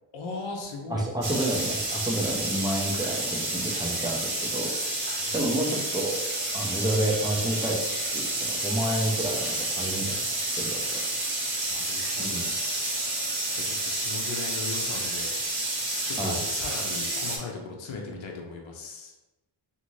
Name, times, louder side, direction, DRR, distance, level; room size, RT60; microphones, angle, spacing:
voice 1, 0.1-1.1 5.2-5.9 11.7-12.5 12.8-13.3 13.5-15.4 16.0-19.1, left 3 dB, 65° left, 1 dB, 0.7 m, -38 dB
voice 2, 0.9-4.7 5.3-6.2 6.5-7.8 8.1-10.2 10.6-10.8 12.2-12.5 16.2-16.4, right 1 dB, 10° right, -2 dB, 0.5 m, -29 dB
sound 1, 1.2-17.4, right 2 dB, 50° right, 0.8 m, -30 dB
2.6 x 2.5 x 3.0 m, 1.0 s
wide cardioid pair, 105°, 49 cm